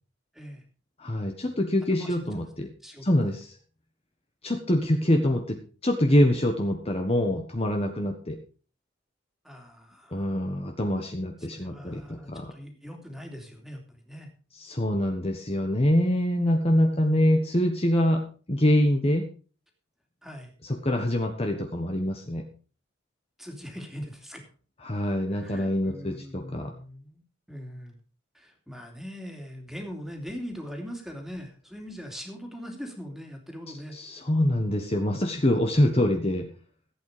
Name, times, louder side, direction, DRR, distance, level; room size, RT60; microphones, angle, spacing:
voice 1, 0.3-0.6 1.9-2.3 2.6-3.3 9.4-10.4 11.4-14.3 20.2-20.5 23.4-24.5 25.3-27.2 27.5-28.0 28.3-34.0, equal, ahead, 3 dB, 2.8 m, -41 dB
voice 2, 1.0-2.7 3.0-3.5 4.4-8.4 10.1-12.5 14.6-18.2 18.5-19.3 20.6-22.4 24.8-26.7 33.9-36.5, left 1 dB, 30° left, 3 dB, 1.4 m, -25 dB
15.0 x 8.7 x 5.0 m, 0.38 s
head